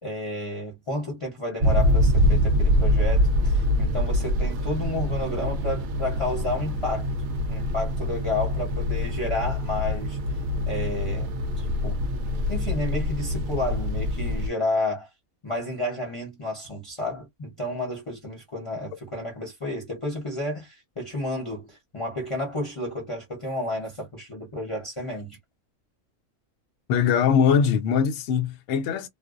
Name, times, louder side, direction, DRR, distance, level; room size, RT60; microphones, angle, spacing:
voice 1, 0.0-7.1 7.5-10.2 10.7-12.0 12.5-15.1 15.4-25.4, left 1 dB, 25° left, 0.8 m, -31 dB
sound 1, 1.6-14.5, left 1 dB, 65° right, 0.7 m, -24 dB
voice 2, 26.9-29.1, left 7 dB, 60° left, 0.8 m, -21 dB
2.5 x 2.0 x 2.4 m
omnidirectional pair, 1.5 m